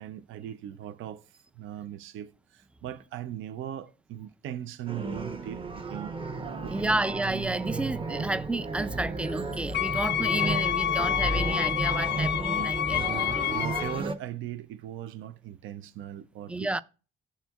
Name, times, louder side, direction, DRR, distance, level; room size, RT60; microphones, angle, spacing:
voice 1, 0.0-6.1 6.6-7.0 13.5-16.8, right 11 dB, 75° right, 0.6 m, -39 dB
sound 1, 4.9-14.1, right 3 dB, 25° right, 0.9 m, -33 dB
voice 2, 6.7-13.0 13.3-13.5 16.5-16.8, right 2 dB, 5° right, 0.3 m, -31 dB
Wind instrument woodwind instrument, 9.7-14.0, left 12 dB, 60° left, 0.5 m, -28 dB
12.5 x 4.3 x 2.4 m
cardioid pair, 100°, 20 cm